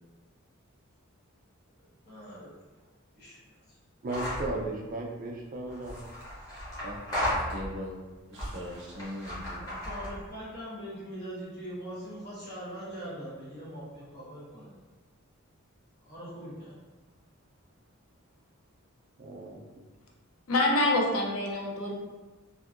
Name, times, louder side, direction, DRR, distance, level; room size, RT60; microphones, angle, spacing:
voice 1, 2.0-2.5 2.8-2.9 3.1-3.8 9.5-14.7 16.0-16.8, equal, 50° left, -8 dB, 1.1 m, -42 dB
voice 2, 4.0-6.0 19.2-19.9, right 2 dB, 40° right, 0 dB, 0.4 m, -35 dB
sound 1, 4.1-4.5 5.7-7.9 8.3-10.3, left 1 dB, 15° left, 1.0 m, -35 dB
voice 3, 7.3-8.0 8.3-9.6, equal, 60° right, -3 dB, 0.7 m, -40 dB
voice 4, 20.5-21.9, left 2 dB, 90° left, -1 dB, 0.6 m, -26 dB
2.9 x 2.5 x 2.4 m, 1.2 s
head